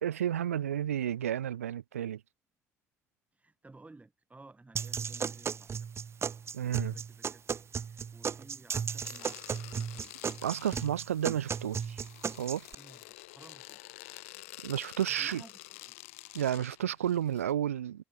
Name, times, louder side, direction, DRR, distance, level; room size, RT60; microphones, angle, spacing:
voice 1, 0.0-2.2 6.5-7.0 10.4-12.7 14.6-15.4 16.3-18.0, right 10 dB, 85° right, 0.5 m, -32 dB
voice 2, 3.3-5.9 6.6-10.1 12.8-13.8 15.1-15.6 15.9-16.0, right 3 dB, 20° right, 7.3 m, -56 dB
sound 1, 4.8-12.7, right 6 dB, 35° right, 0.7 m, -35 dB
sound 2, 9.0-17.5, left 22 dB, 75° left, 0.6 m, -49 dB
figure-of-eight pair, 50°, 8 cm